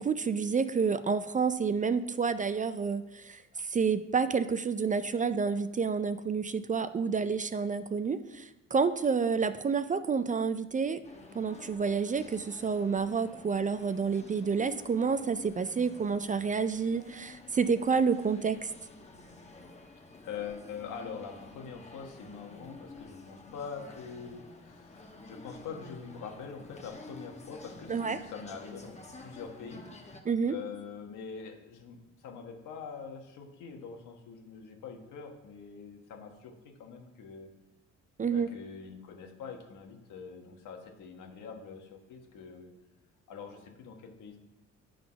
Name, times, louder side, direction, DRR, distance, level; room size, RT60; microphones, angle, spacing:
voice 1, 0.0-11.0 11.3-18.7 27.9-28.2 30.3-30.5 38.2-38.5, right 5 dB, 25° right, 12 dB, 0.4 m, -29 dB
sound 1, 11.0-30.2, left 2 dB, 20° left, 1.1 m, -50 dB
voice 2, 20.2-30.2 30.5-37.5 38.3-42.7 43.3-44.4, left 6 dB, 85° left, 3 dB, 1.4 m, -44 dB
10.0 x 4.0 x 5.7 m, 1.0 s
cardioid pair, 90°, 30 cm